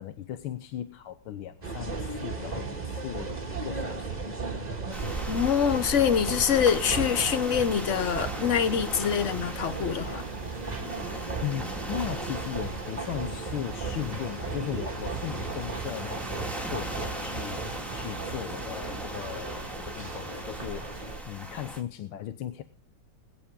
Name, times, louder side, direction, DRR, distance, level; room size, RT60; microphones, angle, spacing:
voice 1, 0.0-4.6 11.4-22.6, left 11 dB, 80° left, 1.8 m, -37 dB
sound 1, 1.6-21.2, right 4 dB, 20° right, 1.6 m, -36 dB
sound 2, 4.9-21.8, right 1 dB, ahead, 2.0 m, -39 dB
voice 2, 5.3-10.2, left 8 dB, 50° left, 1.0 m, -25 dB
21.0 x 9.9 x 3.7 m
omnidirectional pair, 2.3 m